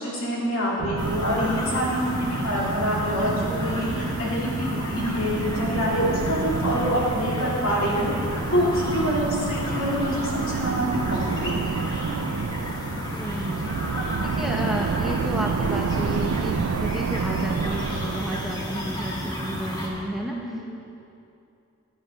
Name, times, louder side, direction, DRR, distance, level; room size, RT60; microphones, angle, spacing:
voice 1, 0.0-11.7 20.3-20.6, equal, 65° left, -5 dB, 2.9 m, -26 dB
sound 1, 0.8-19.2, right 6 dB, 70° right, 0.3 m, -30 dB
sound 2, 1.0-19.9, equal, 20° left, 1.3 m, -32 dB
voice 2, 13.1-13.6 14.2-20.8, equal, ahead, -1 dB, 0.6 m, -32 dB
10.0 x 10.0 x 5.3 m, 2.7 s
head